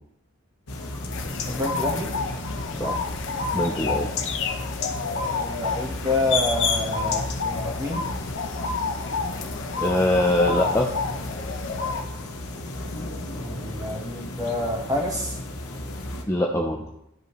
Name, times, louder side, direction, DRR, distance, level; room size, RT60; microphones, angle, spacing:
meadow with foreground robin, 0.7-16.2, left 2 dB, 80° left, 1.1 m, -34 dB
sound 1, 1.1-12.0, left 4 dB, 55° left, 0.7 m, -29 dB
voice 1, 1.5-2.1 5.4-8.0 13.4-15.4, left 1 dB, 15° right, 0 dB, 1.4 m, -28 dB
voice 2, 3.5-4.1 9.8-10.9 16.3-16.8, left 1 dB, 10° left, 0 dB, 0.5 m, -22 dB
11.5 x 5.4 x 3.1 m, 0.79 s
head